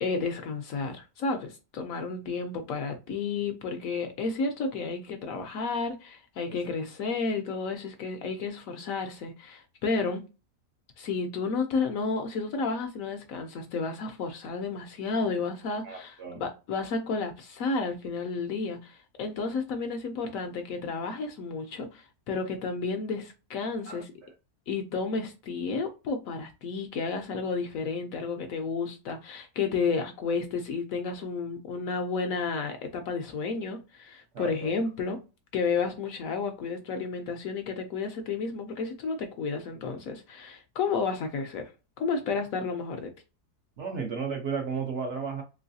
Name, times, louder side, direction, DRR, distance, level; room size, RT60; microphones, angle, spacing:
voice 1, 0.0-10.3 11.0-24.1 24.7-35.2 35.5-43.1, left 4 dB, 70° left, 0.9 m, -32 dB
voice 2, 15.8-16.4 23.9-24.3 34.3-34.7 43.8-45.4, right 5 dB, 60° right, 0.8 m, -34 dB
3.1 x 3.0 x 2.6 m
omnidirectional pair, 1.7 m